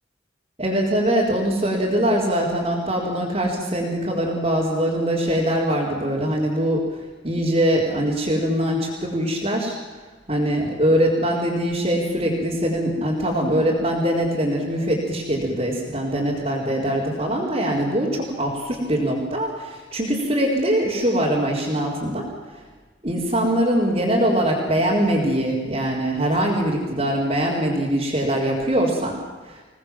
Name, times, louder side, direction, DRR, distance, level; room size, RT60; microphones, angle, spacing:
voice 1, 0.6-6.8 7.2-9.7 10.3-22.2 23.0-29.1 29.5-29.6, equal, 35° right, -7 dB, 4.5 m, -22 dB
27.5 x 19.0 x 7.6 m, 1.3 s
head